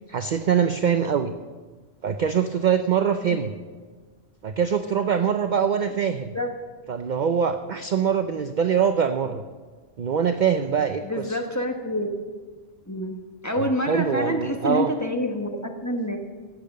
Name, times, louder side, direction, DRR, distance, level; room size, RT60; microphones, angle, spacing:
voice 1, 0.0-1.3 2.0-3.5 4.4-6.3 6.9-9.4 10.0-11.0 11.3-11.4 13.5-14.9, right 7 dB, 50° right, 8 dB, 0.5 m, -23 dB
voice 2, 11.0-12.2 12.9-13.2 13.4-16.2, left 1 dB, 15° left, 2 dB, 1.2 m, -27 dB
14.0 x 8.6 x 6.6 m, 1.4 s
omnidirectional pair, 1.3 m